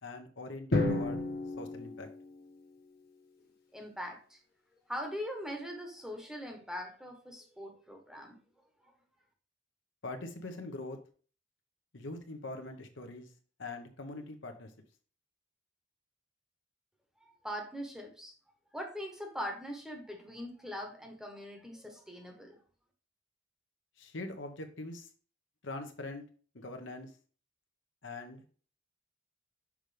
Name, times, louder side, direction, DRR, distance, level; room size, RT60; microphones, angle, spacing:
voice 1, 0.0-1.2 1.6-2.1 10.0-11.0 11.9-13.3 13.6-14.7 24.0-25.1 25.6-26.2 26.5-27.1 28.0-28.4, left 2 dB, 70° left, 6 dB, 1.0 m, -42 dB
Drum, 0.7-2.9, left 2 dB, 50° left, 1.3 m, -32 dB
voice 2, 3.7-4.4 4.9-8.4 8.8-8.9 17.2-18.3 18.7-22.6, equal, 5° right, 2 dB, 1.0 m, -41 dB
6.2 x 5.2 x 3.3 m, 0.41 s
head